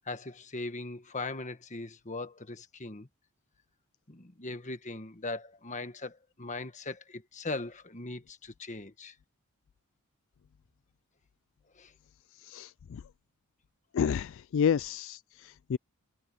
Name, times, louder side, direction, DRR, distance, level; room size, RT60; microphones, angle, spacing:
voice 1, 0.1-3.1 4.1-9.1 11.7-11.9, left 2 dB, 35° left, 1.5 m, -39 dB
voice 2, 12.4-13.0 13.9-15.8, left 7 dB, 60° left, 0.3 m, -30 dB
head